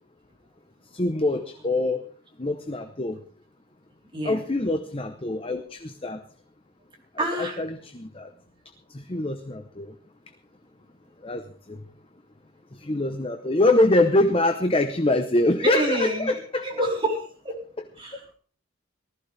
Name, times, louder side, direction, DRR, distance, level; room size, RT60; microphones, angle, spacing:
voice 1, 0.9-2.0 2.4-3.2 4.2-6.2 7.1-8.3 8.9-9.9 11.2-11.8 12.7-16.7, left 2 dB, 25° left, 7 dB, 0.8 m, -24 dB
voice 2, 4.1-4.4 7.2-7.6 15.6-17.6 18.0-18.3, right 1 dB, 25° right, -1 dB, 3.9 m, -28 dB
19.0 x 14.5 x 3.4 m, 0.43 s
head